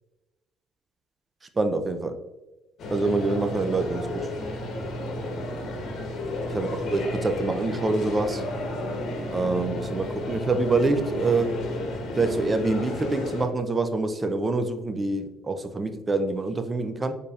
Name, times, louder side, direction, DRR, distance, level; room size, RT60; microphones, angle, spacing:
voice 1, 1.6-2.2 2.9-4.3 6.5-8.4 9.3-11.5 12.2-17.2, right 3 dB, 25° right, 8 dB, 0.5 m, -26 dB
sound 1, 2.8-13.5, left 1 dB, 60° left, 1.1 m, -32 dB
4.3 x 3.4 x 2.4 m, 1.1 s
supercardioid pair, 80°, 0 cm